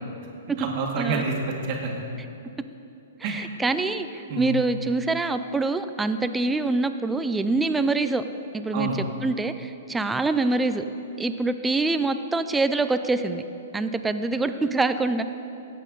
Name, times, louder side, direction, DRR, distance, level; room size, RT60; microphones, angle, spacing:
voice 1, 0.6-2.0 3.2-3.4 4.3-4.5 8.7-9.0, right 4 dB, 40° right, 0 dB, 1.7 m, -28 dB
voice 2, 3.2-8.2 8.5-10.8 11.2-13.4 13.7-15.2, right 3 dB, 10° right, 10 dB, 0.4 m, -25 dB
14.5 x 8.6 x 3.9 m, 2.8 s
hypercardioid pair, 145°, 0 cm